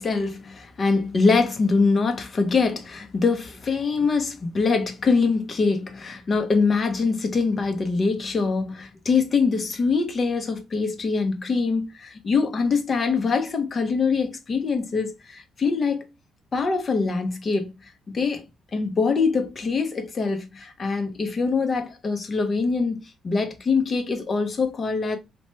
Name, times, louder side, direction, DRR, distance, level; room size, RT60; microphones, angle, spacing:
voice 1, 0.0-16.1 16.5-17.7 18.1-18.4 18.7-25.2, left 4 dB, 40° left, 0.7 m, -23 dB
2.9 x 2.1 x 2.9 m
cardioid pair, 90°, 0 cm